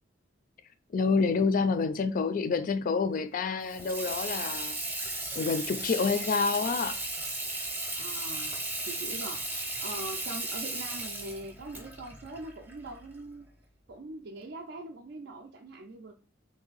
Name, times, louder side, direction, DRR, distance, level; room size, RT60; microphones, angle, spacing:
voice 1, 0.9-7.0, left 4 dB, 45° left, 0.3 m, -28 dB
Water tap faucet / Sink (filling or washing), 3.6-13.2, right 2 dB, 10° right, 0.7 m, -36 dB
voice 2, 7.9-13.5 13.9-16.1, right 2 dB, 60° right, 0.4 m, -42 dB
3.1 x 2.7 x 3.9 m
head